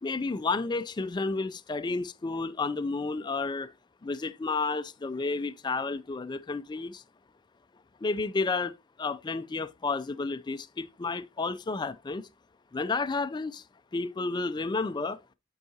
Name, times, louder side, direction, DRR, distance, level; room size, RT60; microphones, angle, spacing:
voice 1, 0.0-3.7 4.0-7.0 8.0-8.7 9.0-12.3 12.7-13.6 13.9-15.2, left 3 dB, 20° left, 0.3 m, -31 dB
9.6 x 4.7 x 2.7 m
head